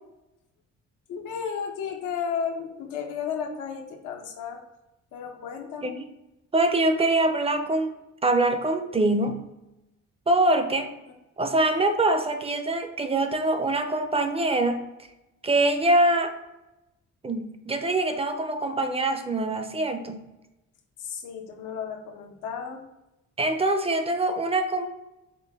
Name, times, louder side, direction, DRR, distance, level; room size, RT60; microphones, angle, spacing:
voice 1, 1.1-4.6 5.1-6.0 21.0-22.8, left 7 dB, 90° left, 3 dB, 0.7 m, -33 dB
voice 2, 6.5-9.4 10.3-10.9 11.4-14.9 15.4-16.3 17.2-20.2 23.4-24.9, right 2 dB, 20° right, 7 dB, 0.4 m, -24 dB
5.1 x 2.2 x 3.4 m, 0.95 s
cardioid pair, 90°, 30 cm